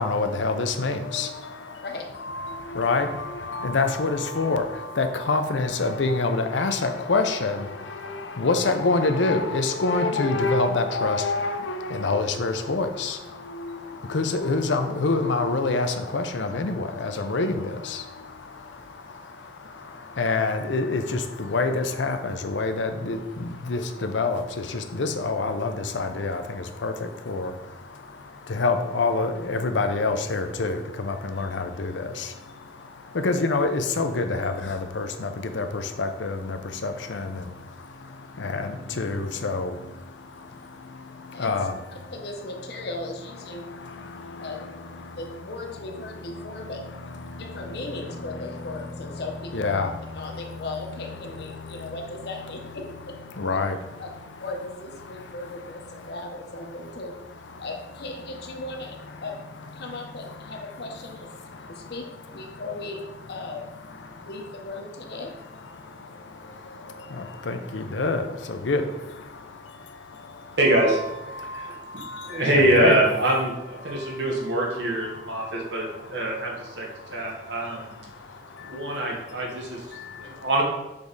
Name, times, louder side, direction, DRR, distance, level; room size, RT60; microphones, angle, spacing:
voice 1, 0.0-1.9 2.1-42.1 43.4-49.2 49.5-50.8 51.1-52.7 53.3-54.4 55.0-56.2 56.7-57.7 58.3-58.6 59.1-59.3 59.8-61.0 61.3-62.6 63.3-64.3 65.1-69.3 69.8-73.0 73.8-80.5, left 3 dB, 85° left, 7 dB, 0.6 m, -29 dB
voice 2, 42.1-43.6 44.4-44.8 45.2-46.9 47.4-49.8 50.1-53.2 54.0-54.1 54.4-57.2 57.6-59.4 59.7-61.3 61.7-63.7 64.2-65.3, left 2 dB, 60° left, 3 dB, 0.9 m, -37 dB
voice 3, 70.6-71.0 71.5-71.7 72.2-77.9 78.6-79.8 80.2-80.6, right 1 dB, 70° right, -2 dB, 1.2 m, -24 dB
6.7 x 3.5 x 4.0 m, 1.0 s
head